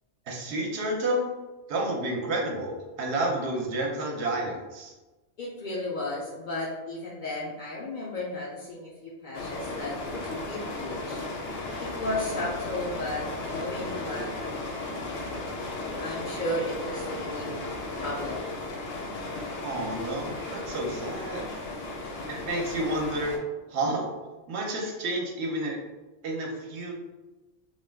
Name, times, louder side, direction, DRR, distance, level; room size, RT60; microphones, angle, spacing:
voice 1, 0.3-1.3 1.7-4.9 19.6-21.5 22.3-23.4 23.7-24.1 24.5-25.8 26.2-26.9, right 1 dB, 70° right, 0 dB, 0.9 m, -30 dB
voice 2, 5.4-11.3 11.8-15.5 16.0-17.7 18.0-18.5 21.5-21.6, left 2 dB, 60° left, -5 dB, 0.5 m, -34 dB
sound 1, 9.3-23.4, left 2 dB, 80° left, 0.9 m, -35 dB
2.3 x 2.2 x 3.3 m, 1.1 s
omnidirectional pair, 1.2 m